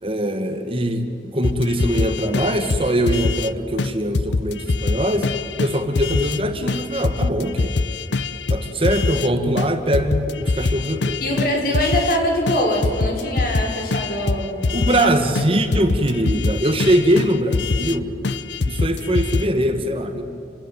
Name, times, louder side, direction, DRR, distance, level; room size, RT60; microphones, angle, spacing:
voice 1, 0.0-5.3 5.6-7.8 8.5-11.4 14.7-18.1 18.6-20.2, right 1 dB, 30° right, 7 dB, 1.7 m, -22 dB
sound 1, 1.4-3.5 3.8-3.9 4.1-6.4 6.7-9.3 9.6-12.2 12.5-15.1 15.4-15.5 15.7-18.0 18.2-19.4, left 3 dB, 90° left, 0.7 m, -24 dB
voice 2, 11.2-15.1 15.6-15.7, equal, 55° left, 1 dB, 5.5 m, -23 dB
28.0 x 18.0 x 9.1 m, 2.7 s
head